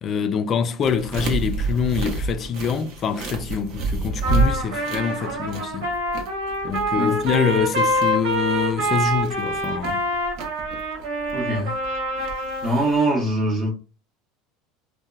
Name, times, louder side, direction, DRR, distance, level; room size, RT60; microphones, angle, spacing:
voice 1, 0.0-5.9 6.6-10.0, left 7 dB, 35° left, 0.3 m, -25 dB
sound 1, 0.8-13.0, right 3 dB, 60° right, 0.7 m, -30 dB
Trumpet, 4.2-12.7, right 1 dB, 80° right, 1.3 m, -26 dB
voice 2, 11.3-11.7 12.6-13.7, right 1 dB, 25° right, 0.7 m, -22 dB
2.7 x 2.1 x 2.3 m
supercardioid pair, 135°, 0 cm